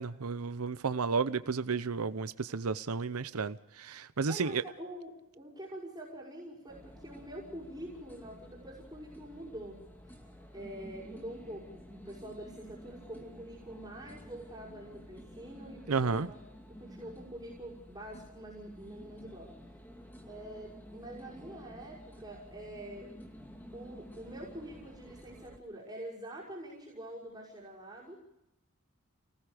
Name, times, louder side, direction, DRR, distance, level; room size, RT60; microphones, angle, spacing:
voice 1, 0.0-4.6 15.9-16.3, right 5 dB, 85° right, 13 dB, 0.8 m, -32 dB
voice 2, 4.3-9.9 10.5-16.4 16.8-19.5 20.3-23.1 23.7-28.2, right 1 dB, 15° right, -6 dB, 5.8 m, -45 dB
sound 1, 6.7-25.6, equal, 10° left, 2.4 m, -52 dB
29.5 x 19.0 x 5.0 m, 0.91 s
head